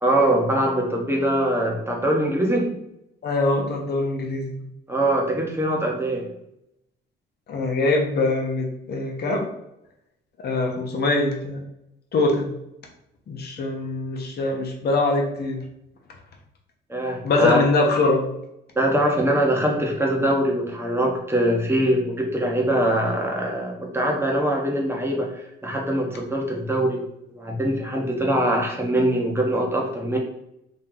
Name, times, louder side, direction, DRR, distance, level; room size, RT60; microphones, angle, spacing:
voice 1, 0.0-2.8 4.9-6.2 16.9-17.6 18.8-27.0 27.3-30.2, right 1 dB, 10° right, -1 dB, 1.0 m, -23 dB
voice 2, 3.2-4.6 7.5-9.5 10.4-11.6 12.1-12.5 13.3-15.6 17.2-18.3, left 2 dB, 55° left, 1 dB, 0.9 m, -23 dB
3.1 x 2.8 x 3.8 m, 0.82 s
cardioid pair, 90°, 20 cm